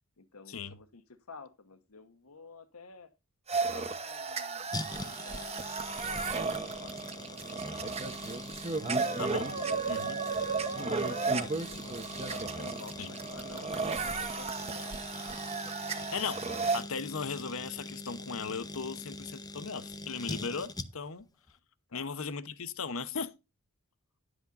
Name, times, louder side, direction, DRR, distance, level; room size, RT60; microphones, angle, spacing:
voice 1, 0.2-3.1 3.7-8.6 8.9-10.0 10.8-15.3 21.9-22.2, left 4 dB, 85° left, 1.1 m, -51 dB
sound 1, 3.5-16.8, right 4 dB, 30° right, 0.9 m, -34 dB
sound 2, 4.7-21.2 21.5-21.6, left 2 dB, 15° left, 0.6 m, -43 dB
voice 2, 9.2-9.5 9.9-10.2 13.0-13.1 16.1-16.5 16.7-21.2 21.9-23.3, left 5 dB, 65° left, 0.9 m, -37 dB
10.5 x 8.0 x 3.9 m
head